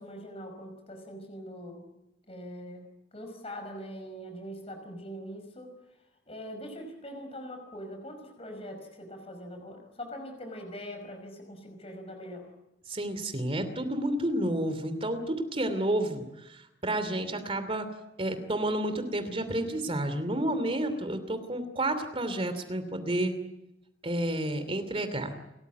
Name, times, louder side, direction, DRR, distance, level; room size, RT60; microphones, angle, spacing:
voice 1, 0.0-1.8 2.3-5.7 6.3-12.5, equal, 35° left, 5 dB, 5.3 m, -42 dB
voice 2, 12.9-17.9 18.2-23.3 24.0-25.4, right 1 dB, 30° right, 9 dB, 2.8 m, -30 dB
29.5 x 14.5 x 9.5 m, 0.93 s
head